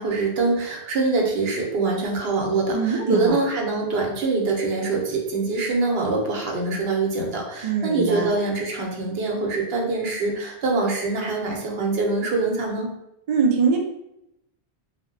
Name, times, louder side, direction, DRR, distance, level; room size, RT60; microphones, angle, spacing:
voice 1, 0.0-12.9, right 3 dB, 75° right, 0 dB, 0.9 m, -24 dB
voice 2, 2.7-3.4 7.6-8.3 13.3-13.8, right 5 dB, 50° right, 1 dB, 0.4 m, -22 dB
2.1 x 2.1 x 3.6 m, 0.82 s
omnidirectional pair, 1.1 m